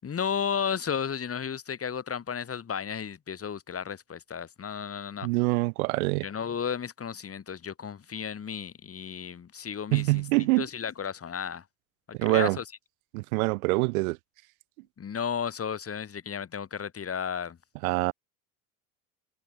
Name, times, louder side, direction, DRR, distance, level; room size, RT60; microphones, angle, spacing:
voice 1, 0.0-5.3 6.2-10.2 10.6-11.6 12.3-12.6 15.0-17.6, left 7 dB, 30° left, 6.0 m, -33 dB
voice 2, 5.2-6.3 9.9-10.7 12.1-12.6 13.1-14.2 17.8-18.1, right 25 dB, 75° right, 1.0 m, -25 dB
hypercardioid pair, 85°, 43 cm